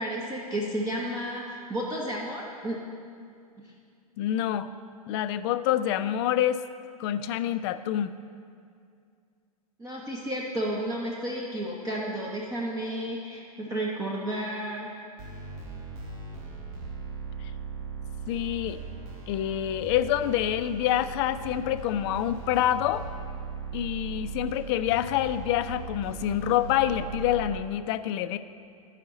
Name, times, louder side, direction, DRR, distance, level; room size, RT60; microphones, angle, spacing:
voice 1, 0.0-2.8 3.6-3.7 9.8-14.9, right 1 dB, 15° right, -3 dB, 1.0 m, -32 dB
voice 2, 4.2-4.7 5.1-6.6 7.0-8.1 17.4-17.5 18.3-18.8 19.3-23.1 23.7-28.4, left 11 dB, 45° left, 12 dB, 0.4 m, -27 dB
sound 1, 15.2-27.6, right 5 dB, 40° right, 1.4 m, -39 dB
14.0 x 4.9 x 4.1 m, 2.3 s
hypercardioid pair, 110°, 20 cm